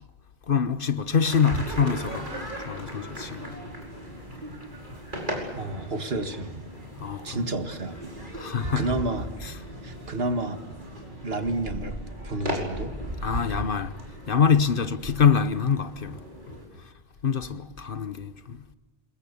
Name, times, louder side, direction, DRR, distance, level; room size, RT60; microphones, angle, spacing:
voice 1, 0.5-3.6 7.0-7.4 8.3-8.9 13.2-13.9 14.3-16.2 17.2-18.6, left 6 dB, 55° left, 1.2 m, -25 dB
sound 1, 1.2-16.7, right 1 dB, 45° right, 5.3 m, -37 dB
voice 2, 5.6-6.6 7.2-8.0 8.3-9.3 9.8-10.6 11.2-12.0 12.2-13.0 14.8-14.9, right 2 dB, 60° right, 2.0 m, -30 dB
27.5 x 21.5 x 6.9 m
omnidirectional pair, 1.1 m